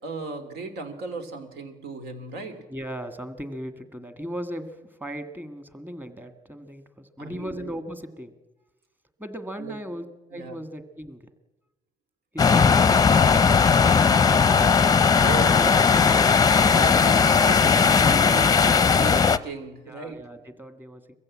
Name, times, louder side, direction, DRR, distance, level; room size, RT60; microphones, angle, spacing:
voice 1, 0.0-2.6 7.2-7.7 9.6-9.7 10.3-10.6 12.5-12.8 15.2-15.8 16.3-17.6 18.0-20.2, right 4 dB, 75° right, 8 dB, 2.8 m, -37 dB
voice 2, 2.7-8.3 9.2-11.3 12.3-13.4 15.3-16.1 16.9-17.0 17.3-18.5 19.9-21.0, equal, 10° right, 9 dB, 1.8 m, -38 dB
sound 1, 12.4-19.4, left 5 dB, 20° left, 0.6 m, -18 dB
22.5 x 15.0 x 8.6 m, 1.1 s
cardioid pair, 110°, 17 cm